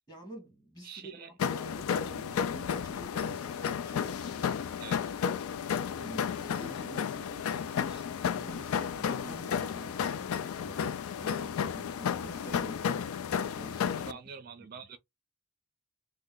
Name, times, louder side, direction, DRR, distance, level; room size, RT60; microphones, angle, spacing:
voice 1, 0.1-4.5 5.9-14.2, right 2 dB, 20° left, 1.6 m, -49 dB
voice 2, 0.8-1.3 4.8-5.2 14.0-15.0, right 6 dB, 45° right, 0.4 m, -46 dB
sound 1, 1.4-14.1, left 7 dB, 80° left, 0.3 m, -33 dB
sound 2, 6.4-7.0 8.5-8.8 9.2-9.7 12.2-12.5, equal, 35° left, 1.1 m, -47 dB
3.2 x 2.1 x 3.6 m
head